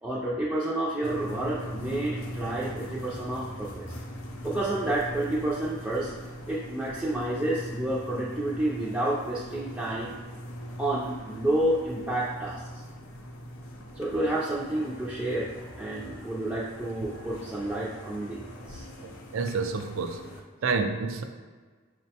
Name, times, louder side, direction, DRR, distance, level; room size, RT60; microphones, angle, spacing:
voice 1, 0.0-3.9 4.4-6.1 6.5-10.1 10.8-12.8 14.0-18.9, right 1 dB, 5° right, -8 dB, 0.4 m, -30 dB
sound 1, 1.0-20.4, equal, 85° left, 0.5 m, -41 dB
voice 2, 19.0-20.2 20.6-21.2, right 4 dB, 80° right, 6 dB, 0.4 m, -29 dB
5.9 x 2.1 x 2.8 m, 1.5 s
head